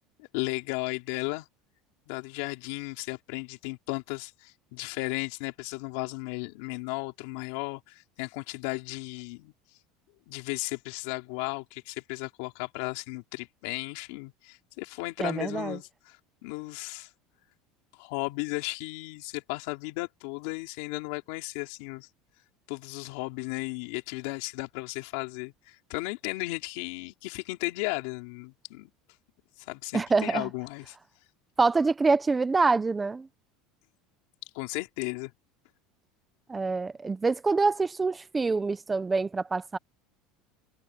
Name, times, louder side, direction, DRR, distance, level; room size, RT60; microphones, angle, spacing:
voice 1, 0.2-1.5 2.1-9.5 10.3-17.1 18.0-22.1 22.7-28.9 29.6-30.9 34.5-35.3, left 24 dB, 65° left, 3.5 m, -35 dB
voice 2, 15.2-15.8 29.9-30.5 31.6-33.3 36.5-39.8, right 4 dB, 10° right, 0.5 m, -26 dB
cardioid pair, 170°, 0 cm